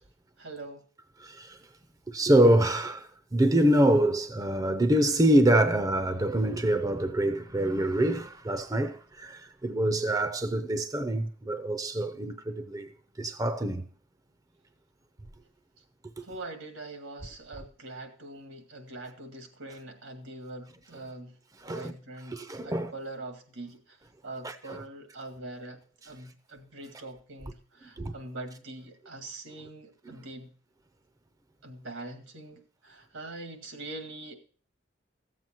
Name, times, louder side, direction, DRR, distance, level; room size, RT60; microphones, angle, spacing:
voice 1, 0.4-0.8 16.2-24.0 24.2-30.5 31.6-34.3, right 2 dB, 85° right, 2.0 m, -43 dB
voice 2, 1.2-1.6 2.1-12.9 13.2-13.8 16.2-16.3 21.6-21.9 22.3-22.9 24.4-24.8 28.0-28.1 30.1-30.2, right 1 dB, 20° right, 0.6 m, -25 dB
15.0 x 7.6 x 4.4 m
head